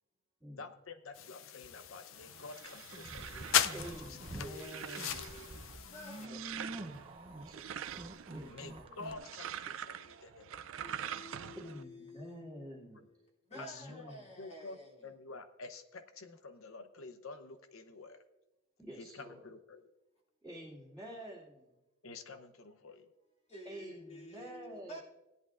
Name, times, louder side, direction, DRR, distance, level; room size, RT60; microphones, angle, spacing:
voice 1, 0.6-3.9 8.5-11.0 13.6-14.0 14.4-14.8 15.0-18.2 19.0-19.8 22.0-23.1, left 3 dB, 90° left, 0.8 m, -49 dB
sound 1, 1.1-6.3, left 10 dB, 70° left, 0.5 m, -37 dB
sound 2, 2.2-11.8, right 9 dB, 70° right, 0.4 m, -46 dB
sound 3, 2.9-4.5 4.9-9.1, right 1 dB, 30° right, 0.7 m, -47 dB
voice 2, 3.7-5.2 6.1-6.4 6.8-6.9 7.5-7.8 8.3-9.0 11.5-13.1 13.5-14.3 18.8-19.4 20.4-21.7 23.6-25.0, equal, 5° left, 2.5 m, -49 dB
voice 3, 4.4-6.4 10.8-15.1 23.5-25.0, left 1 dB, 35° left, 2.4 m, -51 dB
17.0 x 11.0 x 2.5 m
head